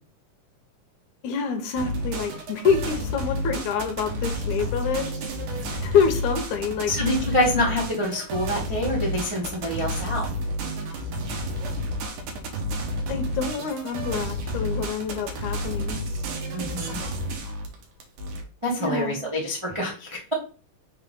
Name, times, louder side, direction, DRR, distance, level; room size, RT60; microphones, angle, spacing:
voice 1, 1.2-5.1 5.8-6.9 13.1-16.0 18.8-19.2, left 6 dB, 75° left, 6 dB, 2.1 m, -26 dB
sound 1, 1.8-18.4, equal, 75° right, 2.7 m, -30 dB
voice 2, 6.9-10.3 16.5-17.0 18.6-20.3, left 1 dB, 40° right, -3 dB, 0.4 m, -26 dB
5.7 x 3.9 x 5.4 m, 0.37 s
omnidirectional pair, 3.8 m